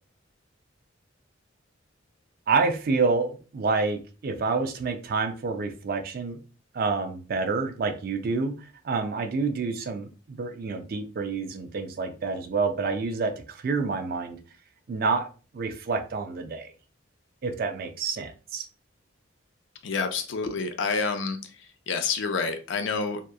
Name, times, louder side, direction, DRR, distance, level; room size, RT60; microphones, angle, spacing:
voice 1, 2.5-6.4 6.7-14.4 14.9-15.3 15.5-16.7 17.4-18.7, right 4 dB, 45° right, 7 dB, 0.3 m, -28 dB
voice 2, 19.8-21.4 21.9-23.2, left 4 dB, 65° left, 7 dB, 0.4 m, -28 dB
2.8 x 2.2 x 2.2 m, 0.35 s
head